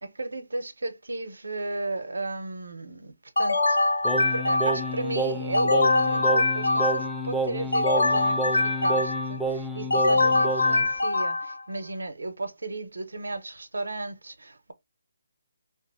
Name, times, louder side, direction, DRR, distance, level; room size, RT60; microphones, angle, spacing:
voice 1, 0.0-3.8 4.3-14.7, right 2 dB, 90° right, 0.6 m, -34 dB
sound 1, 3.4-5.0 5.5-7.2 7.7-9.4 9.9-11.6, left 2 dB, 85° left, 0.6 m, -23 dB
Singing, 4.0-10.9, right 2 dB, ahead, 0.3 m, -30 dB
2.6 x 2.5 x 2.5 m
hypercardioid pair, 160°, 0 cm